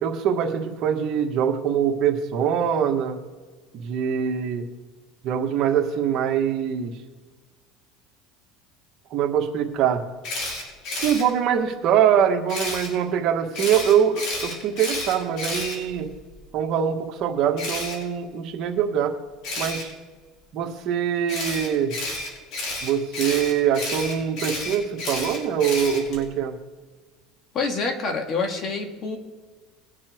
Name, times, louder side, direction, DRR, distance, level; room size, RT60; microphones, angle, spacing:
voice 1, 0.0-3.2 3.7-4.6 5.2-6.9 9.1-10.0 11.0-16.1 16.5-19.2 19.6-19.9 20.5-21.9 22.8-26.6, right 8 dB, 50° right, 3 dB, 1.7 m, -23 dB
Camera, 10.2-11.2 12.5-12.9 13.5-16.3 17.6-17.9 19.4-19.8 21.3-26.2, left 2 dB, 60° left, 5.0 m, -31 dB
voice 2, 27.5-29.2, left 4 dB, 40° left, 4 dB, 2.3 m, -27 dB
21.5 x 7.4 x 4.6 m, 1.4 s
supercardioid pair, 120°, 0 cm